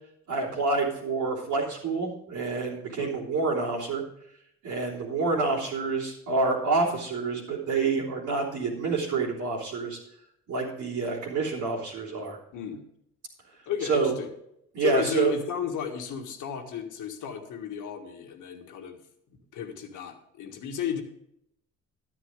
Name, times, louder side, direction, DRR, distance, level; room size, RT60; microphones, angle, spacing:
voice 1, 0.3-4.0 4.6-10.0 10.5-12.4 13.9-14.1 14.7-15.3, right 4 dB, 90° right, -7 dB, 3.3 m, -28 dB
voice 2, 12.5-12.8 13.6-14.3 14.8-19.0 19.3-21.0, left 8 dB, 80° left, 4 dB, 1.7 m, -34 dB
12.0 x 9.9 x 3.7 m, 0.76 s
cardioid pair, 90°, 30 cm